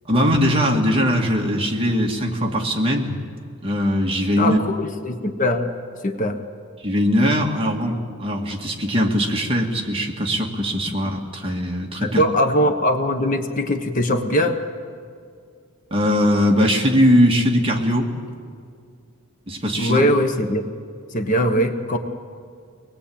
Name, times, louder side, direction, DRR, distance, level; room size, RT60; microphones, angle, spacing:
voice 1, 0.1-3.2 3.6-4.6 6.8-12.2 15.9-18.1 19.5-20.0, equal, 25° right, 0 dB, 2.2 m, -20 dB
voice 2, 4.4-5.7 6.0-6.4 12.0-14.6 19.8-20.7 21.1-22.0, equal, 40° left, 6 dB, 1.2 m, -21 dB
24.5 x 20.0 x 8.7 m, 2.2 s
head